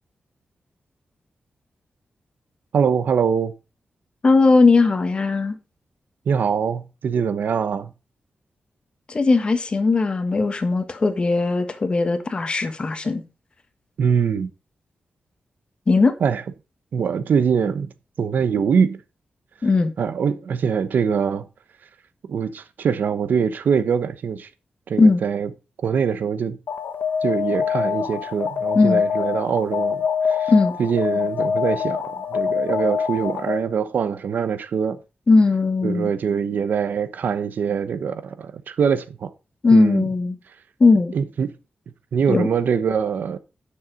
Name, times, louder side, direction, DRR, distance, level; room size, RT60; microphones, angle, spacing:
voice 1, 2.7-3.5 6.3-7.9 14.0-14.5 16.2-16.4 16.9-17.9 18.2-19.0 20.0-21.5 22.3-24.5 24.9-25.5 25.8-26.6 27.2-30.0 30.3-30.5 30.8-35.0 35.8-39.3 39.7-40.0 41.1-41.5 42.1-43.4, right 6 dB, 75° right, 0.9 m, -23 dB
voice 2, 4.2-5.6 9.1-13.2 15.9-16.1 19.6-19.9 25.0-25.2 28.7-29.0 30.5-30.7 35.3-36.1 39.6-40.4 40.8-41.1 42.3-42.5, left 3 dB, 30° left, 1.3 m, -18 dB
Alarm, 26.7-33.7, left 6 dB, 85° left, 1.2 m, -24 dB
9.6 x 6.7 x 5.0 m
wide cardioid pair, 165°, 3 cm